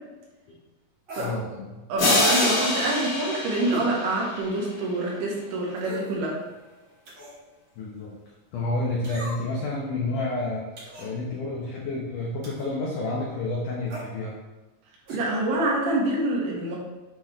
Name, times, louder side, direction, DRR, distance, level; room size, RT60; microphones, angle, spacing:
sound 1, 1.1-1.4 2.4-2.6 3.7-3.9 4.4-4.5 5.8-6.2 7.0-7.4 9.0-9.6 10.8-11.1 12.4-12.7 13.9-14.1 15.1-15.3 15.5-15.6, right 2 dB, 50° right, 1.6 m, -37 dB
voice 1, 1.2-1.8 7.8-8.1 8.5-10.7 11.0-14.3, left 2 dB, 85° left, -3 dB, 1.8 m, -30 dB
voice 2, 1.9-6.4 15.1-16.8, right 2 dB, 80° right, -4 dB, 4.0 m, -26 dB
sound 2, 2.0-4.7, left 2 dB, 45° left, 1.5 m, -25 dB
8.7 x 5.8 x 3.2 m, 1.1 s
omnidirectional pair, 5.2 m